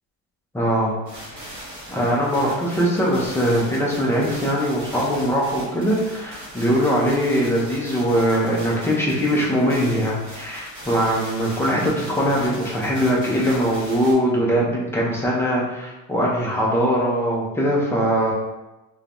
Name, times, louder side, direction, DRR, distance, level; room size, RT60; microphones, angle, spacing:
voice 1, 0.5-1.0 1.2-1.6 1.9-18.3, equal, 5° left, -5 dB, 0.5 m, -21 dB
sound 1, 1.1-14.1, equal, 30° right, 1.3 m, -39 dB
3.1 x 2.2 x 2.5 m, 1.0 s
cardioid pair, 130°, 39 cm